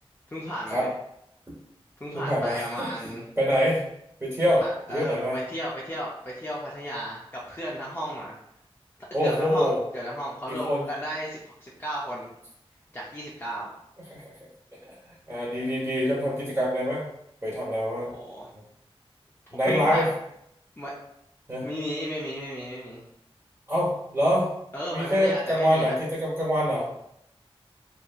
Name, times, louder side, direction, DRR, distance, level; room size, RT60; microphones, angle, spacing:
voice 1, 0.3-0.9 2.0-3.3 4.4-8.4 9.2-12.3 12.9-13.7 18.1-18.5 19.6-20.1 20.8-20.9 21.6-23.0 24.7-26.0, equal, 20° left, -6 dB, 0.5 m, -34 dB
voice 2, 2.1-2.9 3.4-3.8 4.2-4.6 4.9-5.4 9.1-9.8 10.5-10.8 14.1-14.2 14.8-14.9 15.3-17.1 17.4-18.1 19.5-20.1 21.5-21.7 23.7-24.5 24.9-26.9, equal, 20° right, -7 dB, 0.9 m, -25 dB
2.7 x 2.6 x 2.3 m, 0.78 s
wide cardioid pair, 80°, 10 cm